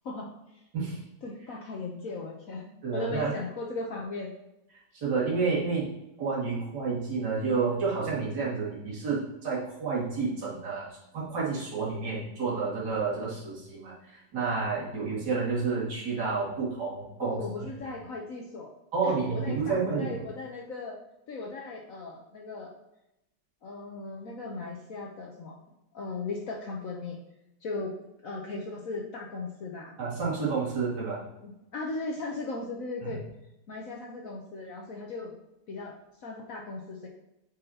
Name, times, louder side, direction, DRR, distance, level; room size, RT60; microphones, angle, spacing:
voice 1, 0.0-0.6 1.2-2.7 2.9-4.3 17.2-18.7 19.0-21.0 21.3-22.7 23.6-25.6 25.9-27.2 27.6-27.9 28.2-29.9 31.4-33.2 33.7-35.4 35.7-37.1, left 3 dB, 55° left, -1 dB, 1.1 m, -37 dB
voice 2, 2.8-3.3 4.9-5.9 6.2-17.4 18.9-20.1 30.0-31.2 33.0-33.2, right 4 dB, 65° right, -7 dB, 2.8 m, -30 dB
9.2 x 5.5 x 2.8 m, 0.89 s
omnidirectional pair, 2.0 m